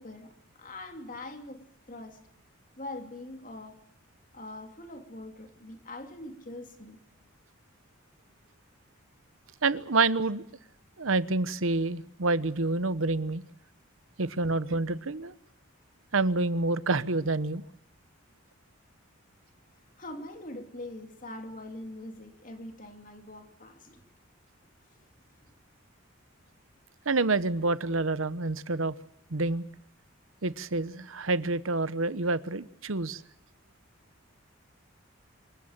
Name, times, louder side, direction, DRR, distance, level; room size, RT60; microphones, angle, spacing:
voice 1, 0.0-2.2 2.8-3.8 4.3-7.0 20.0-24.0, left 1 dB, 40° left, 5 dB, 2.9 m, -43 dB
voice 2, 9.6-10.4 11.0-13.4 14.2-15.3 16.1-17.6 27.1-29.0 29.3-29.6 30.4-33.2, right 3 dB, 90° right, 15 dB, 1.0 m, -28 dB
26.5 x 14.5 x 8.8 m, 0.70 s
head